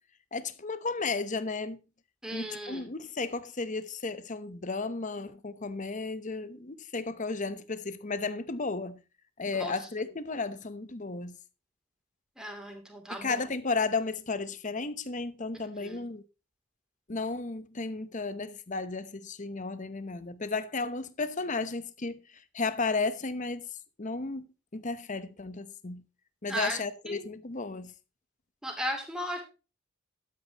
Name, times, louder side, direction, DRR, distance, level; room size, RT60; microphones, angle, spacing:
voice 1, 0.3-1.8 2.3-9.0 9.4-11.4 13.1-16.2 17.1-23.7 24.0-24.5 24.7-26.0 26.4-27.9, left 3 dB, 35° left, 0.9 m, -34 dB
voice 2, 2.2-2.8 9.6-9.7 12.4-13.4 15.8-16.1 26.5-26.8 27.0-27.2 28.6-29.4, equal, 5° right, 2.9 m, -36 dB
12.5 x 9.0 x 3.0 m
head